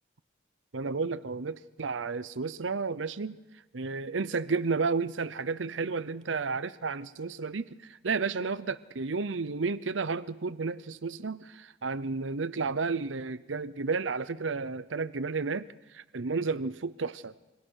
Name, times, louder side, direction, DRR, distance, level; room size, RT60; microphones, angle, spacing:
voice 1, 0.7-3.4 3.7-17.3, right 4 dB, 85° right, 15 dB, 0.7 m, -32 dB
27.0 x 25.0 x 6.4 m, 1.1 s
head